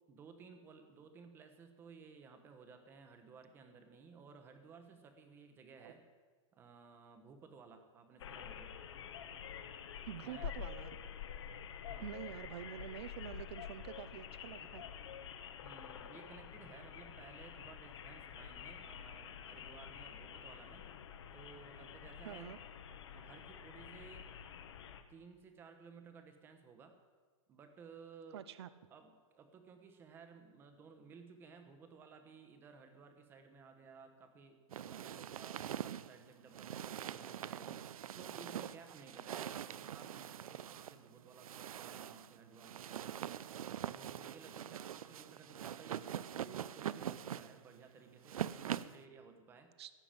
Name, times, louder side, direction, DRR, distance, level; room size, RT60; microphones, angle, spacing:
voice 1, 0.1-6.1 6.5-8.7 10.2-10.7 11.9-12.1 15.6-20.8 21.3-22.5 23.1-24.3 25.1-27.0 27.5-28.4 28.9-43.1 43.9-49.7, right 5 dB, 10° right, 7 dB, 0.9 m, -57 dB
sound 1, 8.2-25.0, left 8 dB, 55° left, 1.1 m, -48 dB
voice 2, 10.0-11.0 12.0-14.8 22.2-22.6 28.3-28.7 49.8-49.9, right 10 dB, 50° right, 14 dB, 0.6 m, -47 dB
sound 2, 34.7-49.0, right 10 dB, 90° right, 0.6 m, -44 dB
15.5 x 6.0 x 8.8 m, 1.5 s
hypercardioid pair, 170°, 18 cm